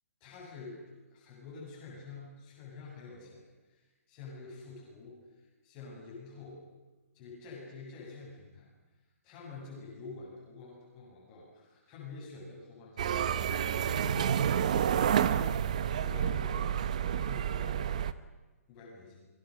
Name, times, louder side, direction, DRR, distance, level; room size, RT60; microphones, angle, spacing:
voice 1, 0.2-0.8 1.1-3.8 4.1-5.2 5.6-6.7 7.1-8.7 9.2-13.5 14.0-15.6 15.9-16.8 17.2-17.9 18.7-19.3, left 3 dB, 15° left, -4 dB, 7.9 m, -47 dB
sound 1, 13.0-18.1, right 9 dB, 30° right, 0.8 m, -29 dB
29.5 x 24.0 x 6.7 m, 1.2 s
hypercardioid pair, 180°, 8 cm